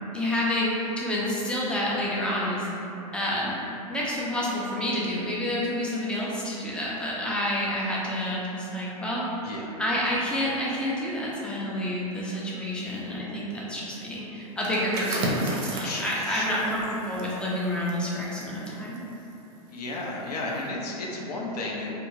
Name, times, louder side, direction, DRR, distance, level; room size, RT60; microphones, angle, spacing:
voice 1, 0.1-2.7 3.1-3.6 3.9-9.4 9.8-19.0, left 1 dB, 5° left, -6 dB, 0.4 m, -29 dB
voice 2, 9.4-9.8 12.7-12.9 15.8-16.7 19.7-21.9, left 2 dB, 85° left, -3 dB, 0.6 m, -34 dB
sound 1, 14.5-20.0 20.4-20.6, right 1 dB, 40° right, 0.5 m, -34 dB
2.4 x 2.3 x 3.0 m, 2.8 s
hypercardioid pair, 130°, 20 cm